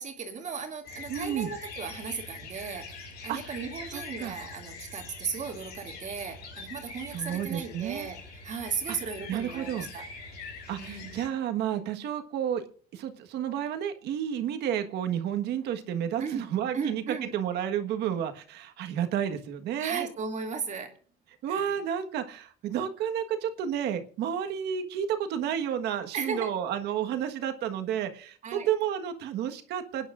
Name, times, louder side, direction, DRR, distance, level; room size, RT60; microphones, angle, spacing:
voice 1, 0.0-10.0 10.8-11.3 16.2-16.4 16.7-17.3 19.8-20.9 21.5-21.7 26.1-26.5 28.4-28.7, right 5 dB, 45° right, 3 dB, 2.4 m, -36 dB
sound 1, 0.8-11.3, left 3 dB, 75° left, 4.3 m, -44 dB
voice 2, 1.1-1.5 3.3-3.6 3.9-4.3 7.1-8.1 8.9-9.0 9.3-9.9 10.7-12.6 12.9-20.1 21.4-30.1, right 9 dB, 80° right, 7 dB, 1.5 m, -31 dB
29.0 x 10.0 x 2.5 m, 0.43 s
cardioid pair, 110°, 17 cm